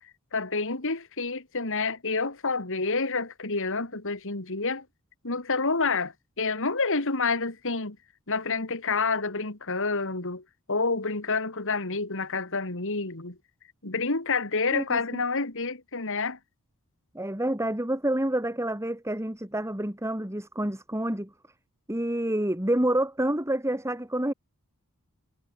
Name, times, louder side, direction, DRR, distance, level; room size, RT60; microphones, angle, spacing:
voice 1, 0.3-4.8 5.2-8.0 8.3-13.4 13.8-16.4, left 4 dB, 60° left, 3.0 m, -28 dB
voice 2, 17.1-21.3 21.9-24.3, right 1 dB, 15° right, 2.8 m, -28 dB
head